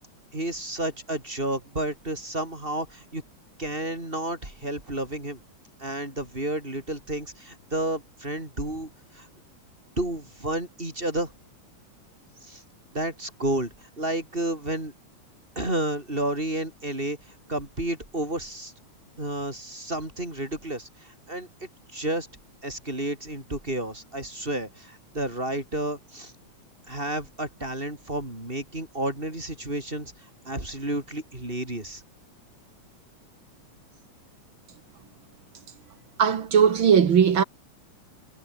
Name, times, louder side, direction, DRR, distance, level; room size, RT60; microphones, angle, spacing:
voice 1, 0.3-3.2 3.6-5.4 5.8-9.3 10.0-11.3 12.4-12.6 12.9-14.9 15.6-18.7 19.2-22.3 22.6-26.3 26.9-30.1 30.5-32.0, right 1 dB, 15° right, 5.6 m, -31 dB
voice 2, 36.2-37.4, right 7 dB, 50° right, 1.9 m, -18 dB
omnidirectional pair, 3.3 m